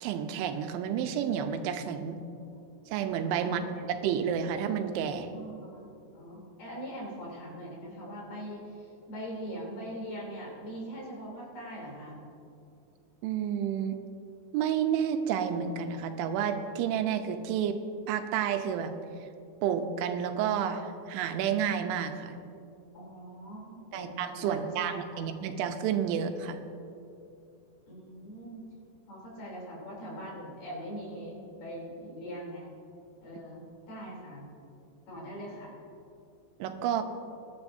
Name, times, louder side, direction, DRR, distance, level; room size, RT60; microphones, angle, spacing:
voice 1, 0.0-2.2 2.9-3.6 3.9-5.3 13.2-14.0 14.5-17.8 18.1-18.9 19.6-22.3 23.9-26.6 36.6-37.0, right 8 dB, 90° right, 7 dB, 3.2 m, -30 dB
voice 2, 3.4-4.0 5.3-5.9 6.1-12.2 22.9-25.2 27.9-28.7 29.1-32.7 33.2-34.4 35.1-35.8, equal, 55° left, -3 dB, 4.8 m, -42 dB
22.0 x 11.5 x 2.7 m, 2.6 s
omnidirectional pair, 5.3 m